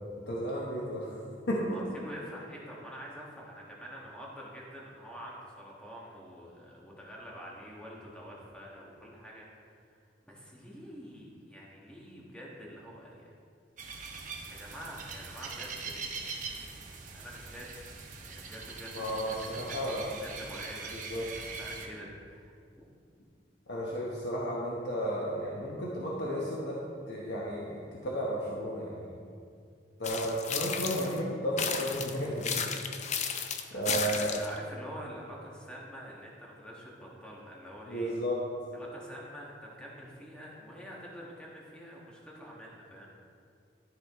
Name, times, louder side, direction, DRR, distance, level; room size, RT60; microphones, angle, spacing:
voice 1, 0.3-1.1 1.5-1.8 18.9-20.0 20.9-21.3 23.7-26.8 27.1-29.1 30.0-32.7 33.7-34.3 37.9-38.4, equal, 70° left, -5 dB, 1.1 m, -33 dB
voice 2, 1.7-9.9 10.2-13.3 14.5-16.8 17.1-18.0 18.2-19.6 20.1-21.3 21.6-22.9 33.0-38.1 38.7-43.1, equal, 5° left, -4 dB, 1.4 m, -47 dB
sound 1, 13.8-21.9, right 4 dB, 45° right, 0.9 m, -42 dB
sound 2, 30.0-31.2 31.6-34.6, left 6 dB, 40° left, 0.5 m, -33 dB
12.5 x 5.0 x 3.6 m, 2.3 s
head